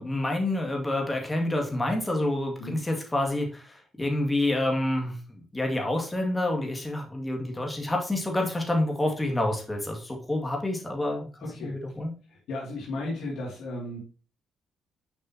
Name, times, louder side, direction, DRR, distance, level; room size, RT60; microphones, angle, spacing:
voice 1, 0.0-11.3 11.6-12.1, left 1 dB, 15° left, 1 dB, 2.2 m, -28 dB
voice 2, 11.4-11.7 12.3-14.0, left 2 dB, 80° left, -4 dB, 2.5 m, -35 dB
7.1 x 5.3 x 2.9 m, 0.37 s
cardioid pair, 90°, 0 cm